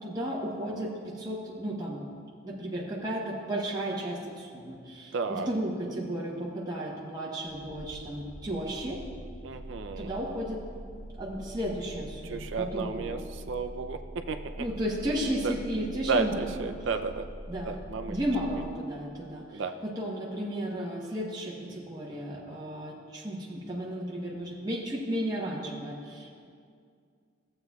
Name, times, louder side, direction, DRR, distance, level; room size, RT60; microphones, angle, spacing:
voice 1, 0.0-2.1 2.4-9.0 10.0-10.6 11.2-13.3 14.6-16.4 17.5-17.8 18.1-26.3, right 1 dB, 20° right, -5 dB, 1.0 m, -34 dB
voice 2, 5.1-5.5 9.4-10.1 12.2-14.4 15.4-15.5 16.1-17.3 17.7-18.2 19.5-19.7, right 4 dB, 65° right, 7 dB, 0.5 m, -32 dB
sound 1, 7.4-18.7, right 1 dB, 75° left, 0.9 m, -44 dB
14.5 x 7.7 x 2.3 m, 2.2 s
head